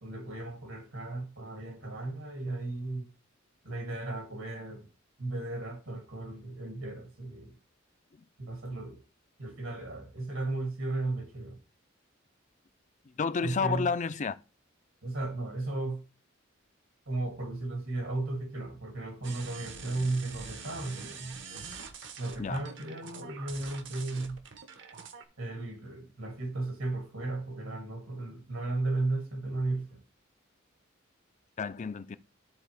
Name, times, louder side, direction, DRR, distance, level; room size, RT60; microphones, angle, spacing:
voice 1, 0.0-3.1 3.6-4.9 5.2-7.5 8.4-9.0 9.4-11.6 13.4-13.9 15.0-16.0 17.1-21.4 22.2-24.4 25.4-30.0, right 2 dB, 80° right, 2.7 m, -35 dB
voice 2, 13.2-14.3 22.4-22.6 31.6-32.2, left 5 dB, 35° left, 0.5 m, -30 dB
sound 1, 19.2-25.2, right 5 dB, 65° right, 1.1 m, -45 dB
11.5 x 4.1 x 3.4 m
head